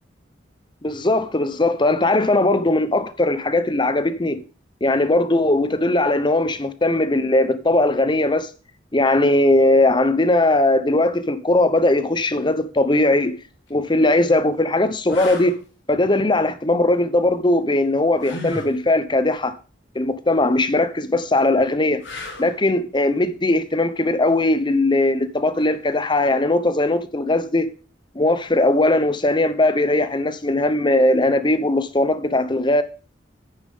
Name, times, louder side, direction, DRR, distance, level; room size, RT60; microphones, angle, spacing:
voice 1, 0.8-4.4 4.8-8.5 8.9-13.3 13.7-15.6 15.9-19.6 19.9-22.0 22.4-27.7 28.1-32.8, left 2 dB, 25° left, 0.9 m, -19 dB
sound 1, 13.5-13.7 14.4-14.5 15.1-15.6 18.2-18.7 22.0-22.6 25.6-25.8, left 2 dB, 75° left, 3.0 m, -34 dB
9.9 x 9.4 x 3.7 m
head